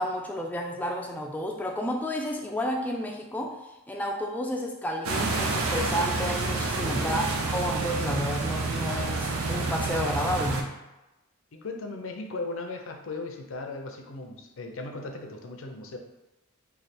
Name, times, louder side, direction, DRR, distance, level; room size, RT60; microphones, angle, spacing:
voice 1, 0.0-10.7, equal, 10° left, 1 dB, 0.3 m, -31 dB
sound 1, 5.0-10.6, right 3 dB, 80° right, 0.5 m, -28 dB
voice 2, 6.8-7.2 11.5-16.0, left 3 dB, 70° left, 4 dB, 0.5 m, -37 dB
3.2 x 2.3 x 4.2 m, 0.99 s
head